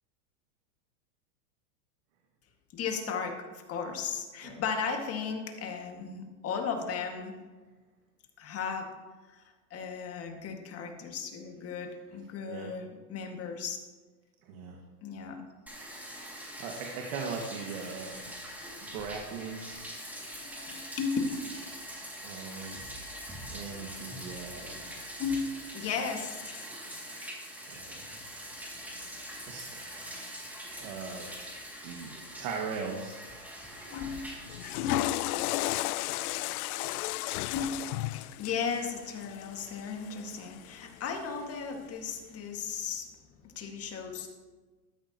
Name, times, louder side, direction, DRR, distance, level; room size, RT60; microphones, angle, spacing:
voice 1, 2.7-7.3 8.4-8.9 9.3-9.4 9.7-13.8 15.0-15.4 20.3-21.2 25.2-26.7 33.9-34.5 34.8-35.0 37.5-37.8 38.0-43.1 43.4-44.3, left 6 dB, 30° left, 3 dB, 2.0 m, -35 dB
voice 2, 14.4-14.8 16.6-18.2 18.9-19.8 22.2-22.8 23.5-24.9 27.7-28.2 29.5-31.3 31.8-32.1 32.4-33.2, right 5 dB, 60° right, 0 dB, 2.0 m, -39 dB
Bathtub (filling or washing), 15.7-34.7, equal, 5° right, 2.4 m, -43 dB
Water / Toilet flush, 34.5-40.7, left 17 dB, 70° left, 0.5 m, -34 dB
13.5 x 12.5 x 3.0 m, 1.3 s
supercardioid pair, 125°, 46 cm